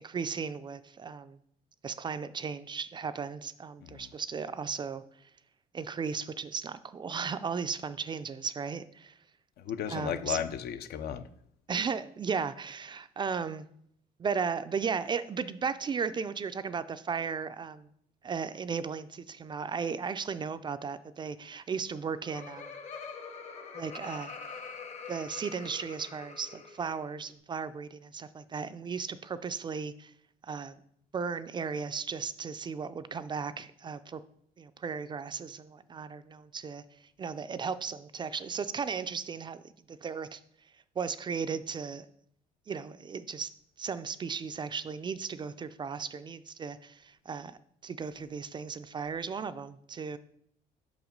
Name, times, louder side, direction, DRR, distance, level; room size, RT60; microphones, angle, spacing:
voice 1, 0.0-1.4 1.8-5.3 5.7-9.2 9.9-10.4 11.7-13.7 14.2-17.9 18.2-22.7 23.7-24.3 25.1-30.1 30.4-30.7 31.1-34.2 34.6-36.8 37.2-39.6 39.9-40.4 41.0-42.1 42.7-50.2, right 6 dB, 25° right, 13 dB, 0.3 m, -36 dB
voice 2, 3.8-4.1 9.6-11.3, left 8 dB, 70° left, 11 dB, 0.6 m, -35 dB
Laughter, 21.8-27.0, left 5 dB, 45° left, 0.9 m, -44 dB
5.8 x 4.9 x 5.2 m, 0.69 s
cardioid pair, 110°, 17 cm